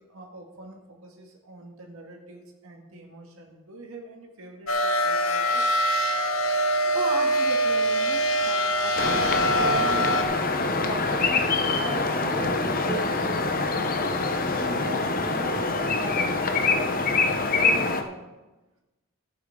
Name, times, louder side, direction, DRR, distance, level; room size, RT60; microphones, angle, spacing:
voice 1, 0.0-5.7, right 2 dB, 85° right, 0 dB, 1.8 m, -46 dB
sound 1, 4.7-10.2, equal, 75° left, 1.2 m, -24 dB
voice 2, 6.9-9.0 9.5-10.1 10.8-11.4 11.8-13.5 14.5-17.1 17.5-18.3, right 2 dB, 25° right, -1 dB, 2.0 m, -36 dB
sound 2, 9.0-18.0, left 3 dB, 40° left, 0.8 m, -25 dB
14.5 x 8.7 x 3.7 m, 1.1 s
head